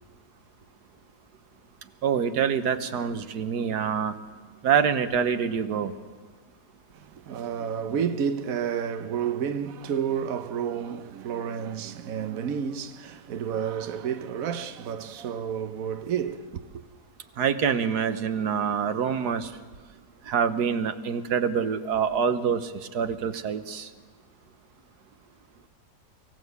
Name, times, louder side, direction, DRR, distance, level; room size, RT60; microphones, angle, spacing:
voice 1, 2.0-4.1 4.6-5.9 17.4-19.5 20.3-23.9, right 7 dB, 80° right, 1.6 m, -26 dB
voice 2, 6.9-16.8, right 8 dB, 60° right, 1.3 m, -30 dB
24.0 x 15.5 x 8.1 m
omnidirectional pair, 1.7 m